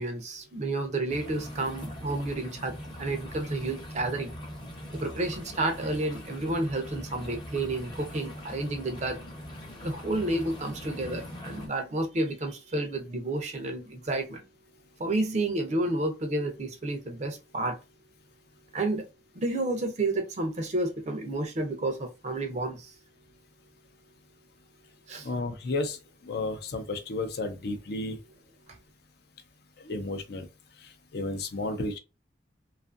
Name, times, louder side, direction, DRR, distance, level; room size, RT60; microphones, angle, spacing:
voice 1, 0.0-4.3 4.9-9.2 9.8-14.4 15.0-17.8 18.7-19.1 19.3-22.9 25.1-25.3, right 2 dB, 40° right, 0.5 m, -30 dB
sound 1, 1.1-11.7, equal, 25° left, 0.8 m, -41 dB
voice 2, 25.2-26.0 26.2-28.2 29.8-30.5 30.8-32.0, left 2 dB, 60° left, 0.5 m, -32 dB
2.6 x 2.4 x 2.4 m
head